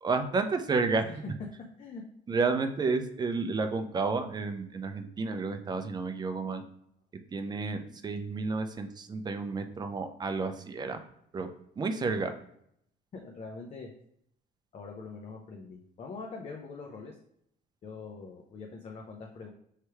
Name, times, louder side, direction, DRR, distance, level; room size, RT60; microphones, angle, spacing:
voice 1, 0.0-1.0 2.3-6.6 7.3-11.0 11.3-11.5 11.8-12.3, right 4 dB, 25° right, 7 dB, 0.5 m, -31 dB
voice 2, 13.1-13.9 14.7-17.2 17.8-19.5, left 4 dB, 40° left, 1 dB, 0.6 m, -43 dB
3.3 x 2.9 x 4.6 m, 0.71 s
cardioid pair, 110°, 17 cm